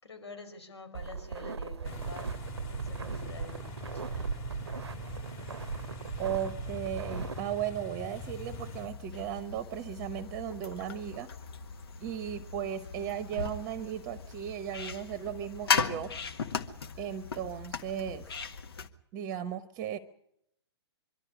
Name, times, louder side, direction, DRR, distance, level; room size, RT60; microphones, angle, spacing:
voice 1, 0.0-2.4 2.7-4.3, left 3 dB, 80° left, 7 dB, 5.2 m, -47 dB
sound 1, 0.9-7.4, right 5 dB, 75° right, 0.8 m, -38 dB
sound 2, 1.8-8.9, left 1 dB, 30° left, 2.4 m, -43 dB
voice 2, 6.2-11.3 12.0-16.1 17.0-18.4 19.1-20.0, right 9 dB, 30° right, 12 dB, 0.9 m, -36 dB
sound 3, 8.1-18.9, left 5 dB, 60° left, 1.6 m, -37 dB
24.5 x 12.5 x 9.8 m, 0.76 s
figure-of-eight pair, 120°, 14 cm